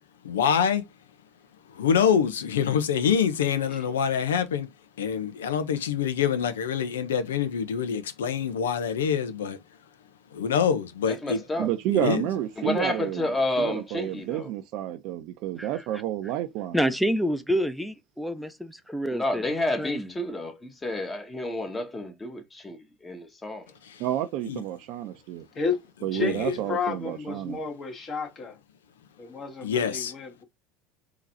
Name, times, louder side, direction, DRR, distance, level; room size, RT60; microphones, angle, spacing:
voice 1, 0.2-0.8 1.7-4.7 5.0-9.6 10.3-11.4 11.9-12.3 23.8-24.0 24.5-24.6 26.1-26.5 29.6-30.1, left 7 dB, 85° left, 0.7 m, -25 dB
voice 2, 11.1-11.7 12.6-14.5 19.1-23.6, left 1 dB, 20° left, 1.5 m, -30 dB
voice 3, 11.6-16.8 24.0-25.5 26.0-27.6, right 12 dB, 60° right, 0.6 m, -30 dB
voice 4, 16.7-19.4 19.8-20.1, equal, ahead, 0.8 m, -27 dB
voice 5, 26.1-28.6 29.2-30.4, left 4 dB, 40° left, 2.0 m, -31 dB
3.9 x 3.0 x 2.7 m
hypercardioid pair, 80°, 0 cm